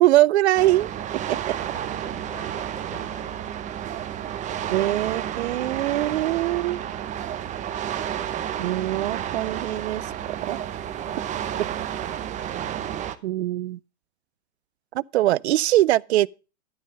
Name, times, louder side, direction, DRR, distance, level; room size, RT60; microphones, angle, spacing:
voice 1, 0.0-0.9 1.3-1.5 4.7-6.8 8.6-10.6 13.2-13.8 14.9-16.3, right 15 dB, 70° right, 0.5 m, -22 dB
sound 1, 0.6-13.2, right 10 dB, 20° right, 0.8 m, -31 dB
voice 2, 1.5-3.6 11.0-11.7, left 4 dB, 90° left, 4.5 m, -48 dB
12.0 x 5.5 x 6.3 m
hypercardioid pair, 120°, 34 cm